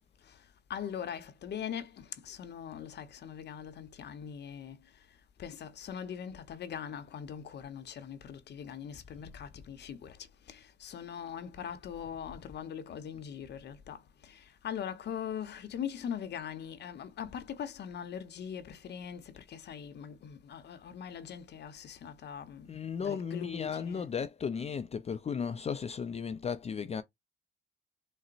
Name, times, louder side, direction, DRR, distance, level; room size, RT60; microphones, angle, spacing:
voice 1, 0.7-4.8 5.4-10.2 10.5-22.7 23.0-24.1, left 8 dB, 60° left, 0.7 m, -41 dB
voice 2, 22.7-27.0, left 6 dB, 30° left, 0.4 m, -35 dB
3.9 x 2.0 x 2.4 m
cardioid pair, 90°, 20 cm